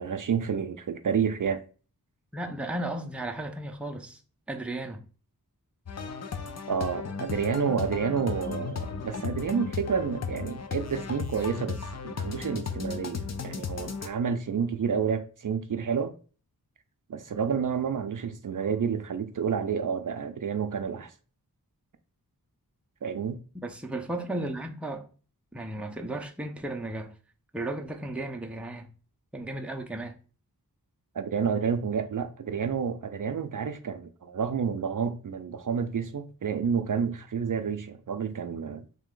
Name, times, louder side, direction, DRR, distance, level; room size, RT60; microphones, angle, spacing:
voice 1, 0.0-1.6 6.7-11.8 12.0-16.1 17.1-21.1 23.0-23.4 31.1-38.8, right 6 dB, 55° right, 0.5 m, -29 dB
voice 2, 2.3-4.2 4.5-5.0 23.6-25.1 25.5-27.1 27.5-28.9 29.3-30.2, right 1 dB, 5° right, 0.5 m, -34 dB
sound 1, 5.9-14.1, left 5 dB, 45° left, 0.5 m, -35 dB
3.3 x 2.9 x 3.7 m
wide cardioid pair, 60°, 38 cm